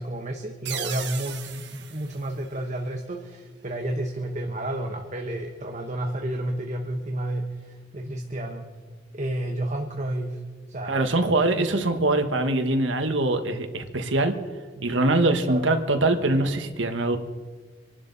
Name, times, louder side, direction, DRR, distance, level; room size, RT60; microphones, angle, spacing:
voice 1, 0.0-8.7 9.1-10.4 10.7-11.0 11.6-11.7 15.5-15.6, right 1 dB, 40° right, 3 dB, 1.2 m, -31 dB
sound 1, 0.7-3.2, right 9 dB, 65° right, 1.3 m, -38 dB
voice 2, 10.9-14.3 14.8-17.2, right 2 dB, 90° right, 7 dB, 1.5 m, -23 dB
26.5 x 11.5 x 4.1 m, 1.5 s
head